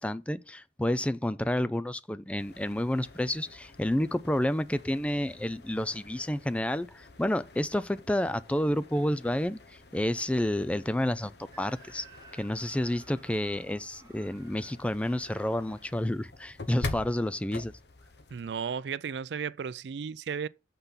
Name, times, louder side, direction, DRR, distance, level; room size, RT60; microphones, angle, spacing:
voice 1, 0.0-11.3 11.6-12.1 12.3-17.7, left 1 dB, 5° left, 0.4 m, -30 dB
sound 1, 2.3-18.6, left 2 dB, 65° left, 0.9 m, -46 dB
Screaming, 11.5-16.4, right 3 dB, 20° right, 1.6 m, -56 dB
voice 2, 18.3-20.5, right 6 dB, 70° right, 0.4 m, -34 dB
6.7 x 5.9 x 5.7 m
head